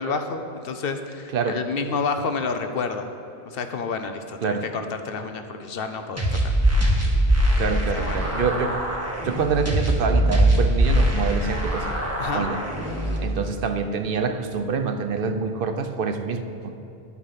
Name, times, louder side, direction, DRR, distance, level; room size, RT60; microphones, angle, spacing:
voice 1, 0.0-3.1 3.4-6.5 7.9-8.2 12.2-12.5, left 4 dB, 70° left, 7 dB, 0.9 m, -29 dB
sound 1, 6.2-13.2, right 1 dB, 15° right, 1.6 m, -22 dB
voice 2, 7.6-8.8 9.2-11.9 12.3-12.6 13.2-16.7, right 5 dB, 65° right, 8 dB, 0.8 m, -26 dB
11.0 x 8.3 x 5.7 m, 2.7 s
omnidirectional pair, 1.0 m